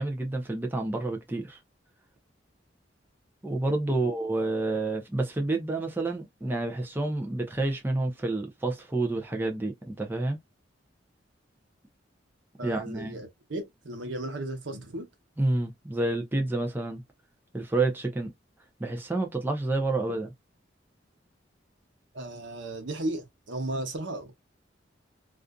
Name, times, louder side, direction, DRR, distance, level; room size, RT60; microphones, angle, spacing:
voice 1, 0.0-1.6 3.4-10.4 12.6-13.2 15.4-17.0 17.5-18.3 18.8-20.3, right 2 dB, 10° right, 0.5 m, -29 dB
voice 2, 12.6-15.1 22.1-24.3, right 1 dB, 80° right, 0.9 m, -35 dB
2.5 x 2.4 x 2.2 m
head